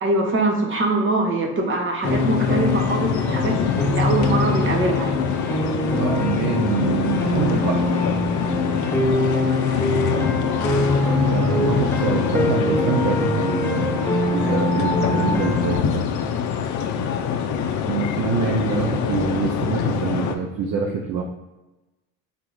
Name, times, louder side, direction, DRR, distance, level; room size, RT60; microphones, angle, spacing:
voice 1, 0.0-3.6 3.9-5.1, right 2 dB, 30° right, 2 dB, 1.1 m, -22 dB
sound 1, 2.0-20.4, left 7 dB, 50° left, 0.6 m, -25 dB
Piano, 2.1-15.8, left 2 dB, 5° left, 0.6 m, -24 dB
voice 2, 5.9-7.9 11.3-16.1 17.9-21.2, right 5 dB, 50° right, 1 dB, 0.7 m, -25 dB
3.7 x 2.9 x 3.9 m, 1.1 s
supercardioid pair, 90°, 38 cm